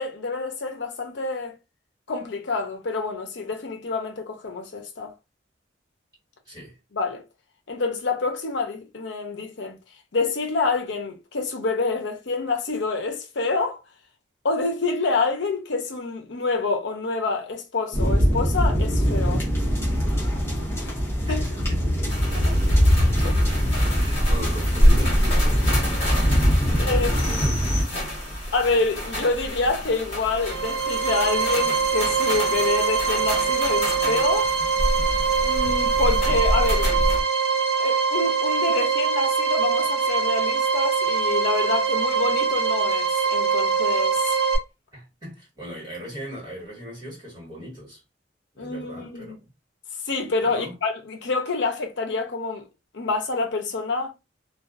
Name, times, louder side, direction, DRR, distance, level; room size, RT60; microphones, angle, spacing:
voice 1, 0.0-1.6 2.1-5.1 6.9-7.2 7.7-9.8 10.1-13.8 14.4-19.5 20.8-20.9 21.3-21.4 26.8-27.5 28.5-34.5 35.4-36.9 37.8-44.4 48.6-49.4 50.1-52.7 52.9-54.1, left 3 dB, 70° left, 0.6 m, -27 dB
voice 2, 6.4-6.8 21.3-22.0 22.3-23.2 23.9-27.0 27.4-28.2 44.9-48.0 48.5-49.5 50.4-50.7, equal, 20° right, 1.5 m, -39 dB
sound 1, 17.9-27.8, equal, 15° left, 0.7 m, -22 dB
sound 2, 22.1-37.2, equal, 30° left, 1.3 m, -27 dB
sound 3, 30.4-44.6, right 5 dB, 50° right, 1.1 m, -23 dB
2.5 x 2.3 x 2.4 m
head